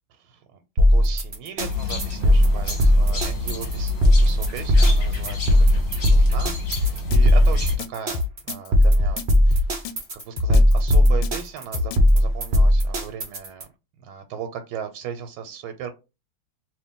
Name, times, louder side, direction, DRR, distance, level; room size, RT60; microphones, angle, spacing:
voice 1, 0.1-9.7 10.1-13.7 14.0-15.9, right 8 dB, 85° right, 7 dB, 1.4 m, -37 dB
sound 1, 0.8-13.6, left 1 dB, 60° right, 0.5 m, -17 dB
sound 2, 1.6-7.8, left 3 dB, 40° left, 1.3 m, -29 dB
Drum kit, 6.8-12.1, left 4 dB, 80° left, 1.3 m, -28 dB
3.0 x 2.8 x 3.6 m, 0.27 s
omnidirectional pair, 2.3 m